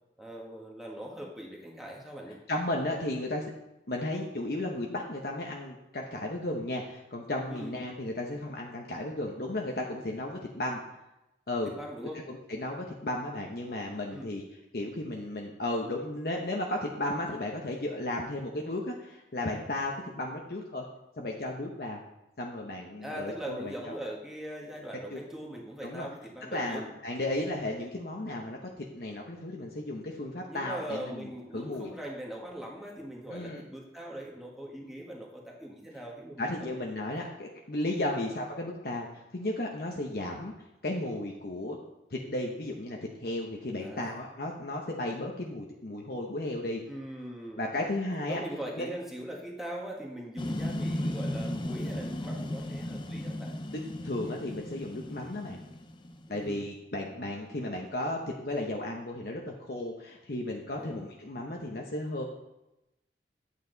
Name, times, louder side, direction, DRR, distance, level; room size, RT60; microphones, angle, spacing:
voice 1, 0.2-2.4 7.5-7.7 11.6-12.3 14.1-14.3 23.0-26.8 30.5-36.7 37.2-37.3 38.1-38.3 43.8-44.2 46.9-47.6 48.3-53.5 56.3-56.7 60.8-60.9, right 1 dB, ahead, -2 dB, 1.5 m, -41 dB
voice 2, 2.5-3.5 3.9-10.8 11.5-11.7 12.3-14.4 14.7-20.8 21.2-22.0 22.4-23.9 25.1-25.2 25.8-26.1 26.5-31.3 31.5-31.9 33.3-33.6 36.4-40.5 40.8-41.8 42.1-46.8 47.6-48.4 48.8-48.9 53.7-55.6 56.3-62.2, left 1 dB, 55° left, 0 dB, 1.0 m, -34 dB
sound 1, 50.4-56.4, left 1 dB, 25° left, 0.6 m, -35 dB
10.0 x 8.4 x 4.0 m, 0.92 s
head